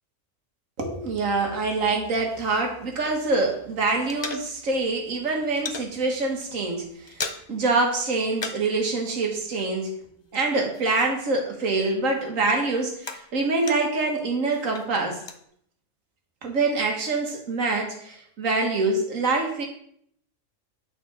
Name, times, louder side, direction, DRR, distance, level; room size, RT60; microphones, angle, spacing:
voice 1, 0.8-9.9 10.3-15.2 16.4-19.6, right 3 dB, 80° right, 2 dB, 1.8 m, -25 dB
sound 1, 2.0-3.5 3.8-4.9 5.2-5.9 6.3-6.5 6.8-7.7 7.9-8.8 9.0-11.4 11.7-14.1 14.5-15.4, left 4 dB, 40° left, 0.4 m, -38 dB
8.7 x 4.2 x 4.7 m, 0.68 s
omnidirectional pair, 1.3 m